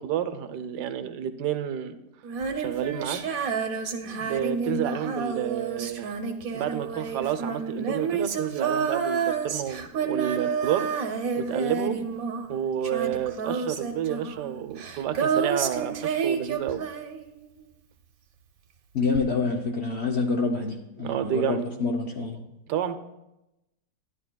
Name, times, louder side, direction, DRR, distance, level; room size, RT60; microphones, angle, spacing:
voice 1, 0.0-1.9 2.5-3.2 4.2-6.2 6.5-10.9 11.4-12.1 12.5-16.8 21.0-21.7 22.7-23.0, right 9 dB, 80° right, 10 dB, 1.2 m, -30 dB
Female singing, 2.2-17.6 19.1-19.2, right 6 dB, 65° right, 1.1 m, -29 dB
voice 2, 18.9-22.4, left 4 dB, 60° left, 2 dB, 0.7 m, -27 dB
12.5 x 10.5 x 2.2 m, 0.93 s
omnidirectional pair, 1.8 m